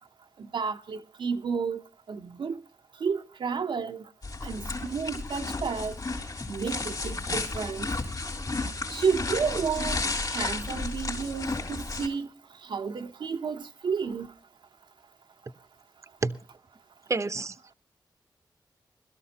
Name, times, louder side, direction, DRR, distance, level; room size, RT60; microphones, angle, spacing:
voice 1, 0.4-1.8 2.1-2.6 3.0-4.0 4.4-6.0 6.5-7.9 8.9-12.3 12.6-14.3, right 5 dB, 75° right, 0.8 m, -31 dB
sound 1, 4.2-12.1, left 3 dB, 50° left, 3.4 m, -33 dB
voice 2, 17.1-17.7, right 3 dB, 35° right, 0.7 m, -29 dB
21.0 x 13.0 x 2.8 m
cardioid pair, 55°, 8 cm